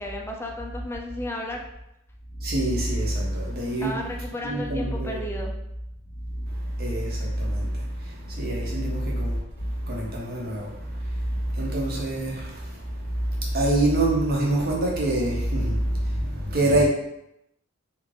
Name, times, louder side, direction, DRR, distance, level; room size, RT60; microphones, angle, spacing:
voice 1, 0.0-1.6 3.8-5.5, left 1 dB, 10° left, 0.3 m, -33 dB
voice 2, 2.3-5.2 6.2-16.8, right 1 dB, 50° right, 0.8 m, -26 dB
2.8 x 2.5 x 3.2 m
head